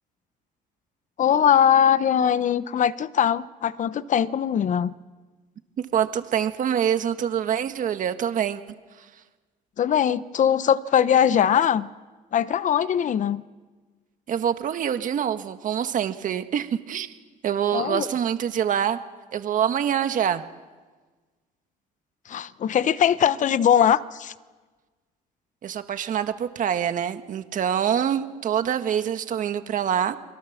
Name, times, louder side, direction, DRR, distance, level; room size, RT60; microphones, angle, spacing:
voice 1, 1.2-4.9 9.8-11.9 12.3-13.4 17.7-18.1 22.3-24.3, left 9 dB, 50° left, 15 dB, 0.9 m, -21 dB
voice 2, 5.8-8.6 14.3-17.1 17.4-19.0 19.3-20.4 25.6-30.2, right 9 dB, 50° right, 9 dB, 1.5 m, -25 dB
29.5 x 22.5 x 7.3 m, 1.4 s
cardioid pair, 110°, 17 cm